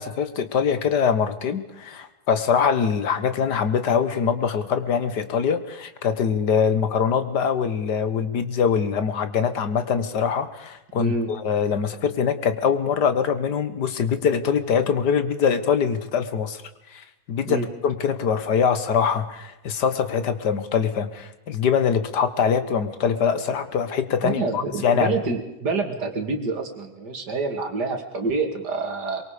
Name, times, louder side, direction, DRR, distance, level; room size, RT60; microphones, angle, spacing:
voice 1, 0.0-16.6 16.9-25.2, left 7 dB, 85° left, 11 dB, 1.9 m, -23 dB
voice 2, 11.0-11.3 17.4-17.7 24.2-29.2, right 3 dB, 85° right, 5 dB, 2.9 m, -27 dB
23.5 x 23.0 x 5.1 m, 0.96 s
omnidirectional pair, 1.7 m